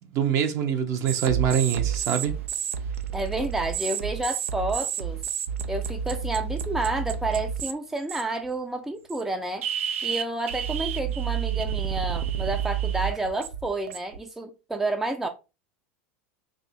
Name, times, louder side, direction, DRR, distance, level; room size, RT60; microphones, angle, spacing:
voice 1, 0.1-2.3, right 8 dB, 45° right, 0.7 m, -24 dB
sound 1, 1.1-7.7 8.1-8.5 9.1-9.2 9.6-14.2, right 8 dB, 75° right, 0.3 m, -30 dB
voice 2, 3.1-5.2 5.7-9.6 10.0-15.3, right 2 dB, 5° right, 0.4 m, -30 dB
2.7 x 2.5 x 4.2 m
figure-of-eight pair, 85°, 7 cm